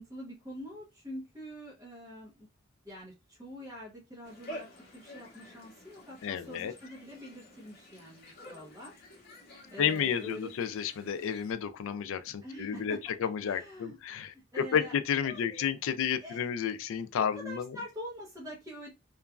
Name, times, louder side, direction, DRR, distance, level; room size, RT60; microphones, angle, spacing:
voice 1, 0.0-2.5 2.8-4.7 4.9-9.0 9.7-10.5 12.4-13.0 13.4-14.0 14.5-14.9 15.2-15.7 16.2-16.5 17.2-18.9, equal, 15° right, 0.8 m, -45 dB
sound 1, 4.2-11.5, equal, 50° left, 0.9 m, -50 dB
voice 2, 6.2-6.7 9.8-17.7, left 7 dB, 65° left, 0.3 m, -31 dB
2.9 x 2.4 x 2.3 m
head